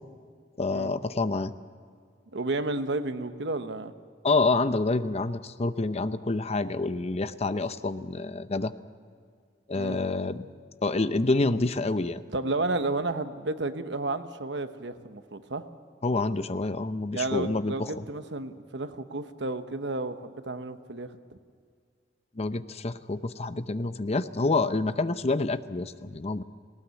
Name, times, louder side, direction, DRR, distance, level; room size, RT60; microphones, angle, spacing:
voice 1, 0.6-1.5 4.2-8.7 9.7-10.4 10.8-12.2 16.0-17.7 22.4-26.4, left 3 dB, 35° left, 12 dB, 0.7 m, -27 dB
voice 2, 2.3-3.9 9.7-10.0 12.3-15.6 17.1-21.1, right 2 dB, 75° right, 9 dB, 1.1 m, -32 dB
19.0 x 18.5 x 8.3 m, 2.1 s
head